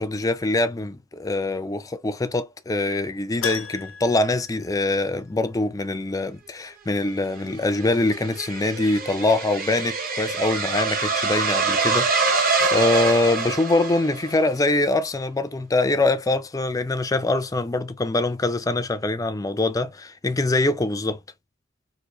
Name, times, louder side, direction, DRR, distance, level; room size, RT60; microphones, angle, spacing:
voice 1, 0.0-21.2, left 2 dB, 15° left, 0.4 m, -24 dB
Keyboard (musical), 3.4-5.5 5.7-5.8 8.5-8.6 8.9-9.0, left 5 dB, 75° left, 0.5 m, -35 dB
sound 1, 7.4-14.4, right 4 dB, 45° right, 0.9 m, -25 dB
3.8 x 2.6 x 2.9 m
head